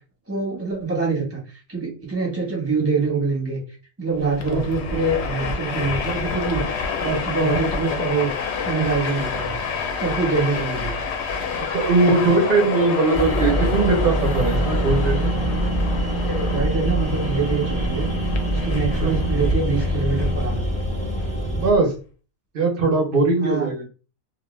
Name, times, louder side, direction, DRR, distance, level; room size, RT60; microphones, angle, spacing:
voice 1, 0.3-3.6 4.0-8.3 8.6-9.6 10.0-11.0 16.3-18.1 18.5-20.6 23.4-23.7, right 4 dB, 10° right, -2 dB, 0.9 m, -25 dB
Train, 4.2-21.8, left 4 dB, 65° left, 0.7 m, -28 dB
voice 2, 11.7-15.3 19.0-19.1 21.5-21.9 22.5-23.8, right 3 dB, 55° right, 2 dB, 0.7 m, -20 dB
sound 1, 13.1-21.7, right 1 dB, 10° left, 0.4 m, -24 dB
2.3 x 2.1 x 3.1 m, 0.35 s
omnidirectional pair, 1.4 m